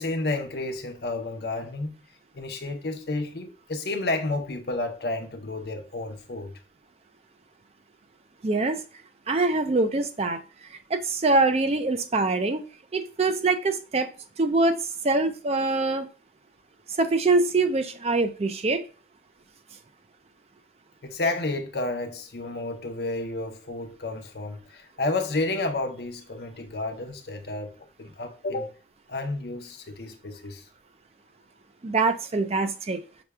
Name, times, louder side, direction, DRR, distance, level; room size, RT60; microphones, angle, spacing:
voice 1, 0.0-1.9 2.3-6.6 21.0-28.7 29.1-30.6, left 2 dB, 60° left, 0.7 m, -31 dB
voice 2, 8.4-8.8 9.3-10.4 10.9-12.6 12.9-14.1 14.4-14.8 15.0-16.1 17.0-18.8 31.8-33.0, right 3 dB, 35° right, 0.4 m, -24 dB
5.9 x 2.3 x 3.3 m
head